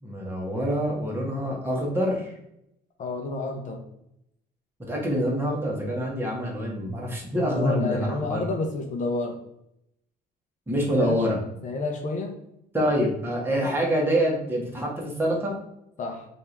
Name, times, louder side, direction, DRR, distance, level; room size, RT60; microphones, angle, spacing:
voice 1, 0.0-2.3 4.8-8.4 10.7-11.4 12.7-15.5, equal, 15° right, -2 dB, 1.4 m, -26 dB
voice 2, 3.0-3.8 7.5-9.4 10.9-11.2 11.6-12.4 16.0-16.3, left 3 dB, 50° left, 3 dB, 0.7 m, -30 dB
3.4 x 2.7 x 4.5 m, 0.79 s
cardioid pair, 110°, 17 cm